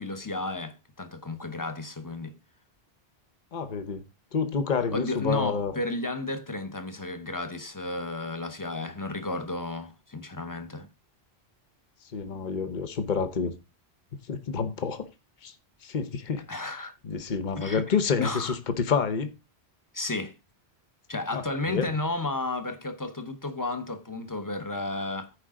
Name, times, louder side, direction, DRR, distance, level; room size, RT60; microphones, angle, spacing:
voice 1, 0.0-2.4 4.9-10.9 16.5-17.0 17.6-17.8 18.2-18.6 19.9-20.4 21.1-25.3, left 2 dB, 20° left, 0.9 m, -33 dB
voice 2, 3.5-4.0 4.3-5.7 12.1-13.5 14.3-15.0 15.4-15.5 15.8-16.4 17.0-19.3 21.3-21.4 21.7-21.9, left 5 dB, 50° left, 1.1 m, -28 dB
14.5 x 4.9 x 3.7 m
omnidirectional pair, 1.1 m